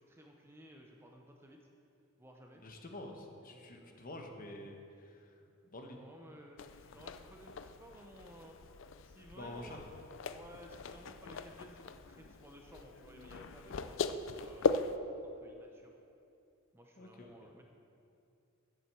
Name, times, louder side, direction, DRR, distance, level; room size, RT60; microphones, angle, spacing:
voice 1, 0.0-1.7 2.2-2.6 3.5-4.0 5.9-8.6 9.0-9.8 10.3-14.9 15.2-16.0 16.7-17.6, equal, 10° right, 1 dB, 0.6 m, -56 dB
voice 2, 2.6-5.4 5.7-6.0 9.4-9.8 17.0-17.5, left 1 dB, 40° left, 3 dB, 1.1 m, -48 dB
sound 1, 6.6-15.0, left 4 dB, 60° left, 0.4 m, -39 dB
8.4 x 7.9 x 7.5 m, 2.6 s
head